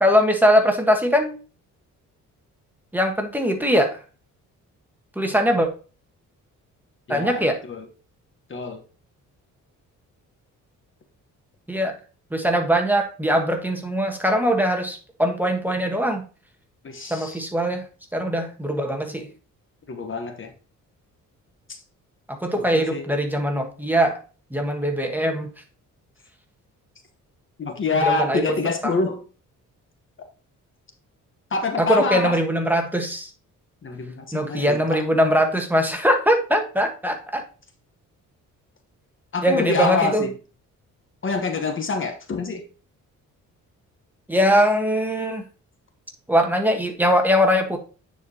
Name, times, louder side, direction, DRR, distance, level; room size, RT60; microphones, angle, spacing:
voice 1, 0.0-1.4 2.9-4.0 5.2-5.7 7.1-7.6 11.7-12.0 12.3-16.2 17.1-17.8 18.1-19.3 22.3-24.2 24.5-25.5 28.0-28.4 28.8-29.0 31.8-33.3 34.3-37.4 39.4-40.2 44.3-45.4 46.3-47.8, equal, 5° right, 3 dB, 1.4 m, -21 dB
voice 2, 7.1-7.9 8.5-8.8 16.8-17.4 19.9-20.5 21.7-21.8 22.6-23.1 27.6-29.3 31.5-32.4 33.8-35.0 39.3-40.3 41.2-42.6, left 3 dB, 40° left, 6 dB, 1.2 m, -26 dB
9.4 x 4.5 x 2.9 m, 0.35 s
cardioid pair, 95°, 31 cm